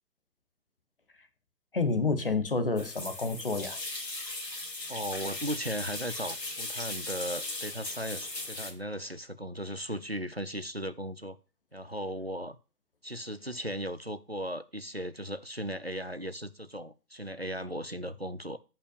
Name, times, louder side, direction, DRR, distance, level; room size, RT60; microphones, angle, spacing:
voice 1, 1.7-3.8, left 3 dB, 35° left, 0.9 m, -29 dB
sound 1, 2.8-8.7, left 2 dB, 80° left, 2.0 m, -38 dB
voice 2, 4.9-11.4 11.7-12.6 13.0-18.6, equal, 40° right, 0.4 m, -37 dB
15.0 x 5.6 x 2.4 m
figure-of-eight pair, 150°, 49 cm